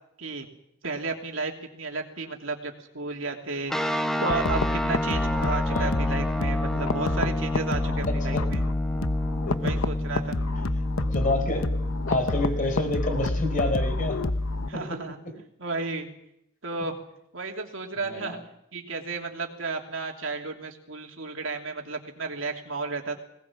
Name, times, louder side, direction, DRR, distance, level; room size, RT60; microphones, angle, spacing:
voice 1, 0.8-8.6 9.6-10.4 14.7-15.2 15.6-16.1 16.6-16.9 17.3-18.4 18.7-23.2, right 3 dB, 70° right, 2 dB, 3.0 m, -33 dB
sound 1, 3.7-14.9, left 1 dB, ahead, 1.2 m, -31 dB
sound 2, 4.3-14.7, left 2 dB, 90° left, 1.1 m, -28 dB
voice 2, 5.7-6.0 8.1-8.4 9.5-9.7 11.1-11.7 12.1-14.2 14.7-15.0 18.0-18.4, left 2 dB, 40° left, 5 dB, 4.5 m, -29 dB
21.0 x 19.0 x 7.4 m, 0.79 s
head